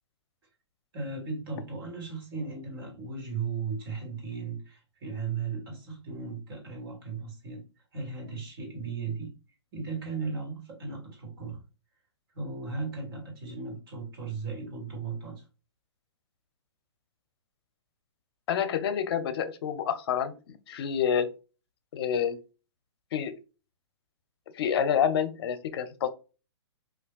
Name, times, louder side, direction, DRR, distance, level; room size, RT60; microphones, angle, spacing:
voice 1, 0.9-7.6 7.9-9.4 9.7-11.6 12.3-15.4, right 4 dB, 55° right, 1.5 m, -36 dB
voice 2, 18.5-21.3 21.9-22.4 23.1-23.4 24.5-26.1, left 8 dB, 55° left, 0.5 m, -28 dB
3.3 x 2.4 x 2.3 m
hypercardioid pair, 130°, 15 cm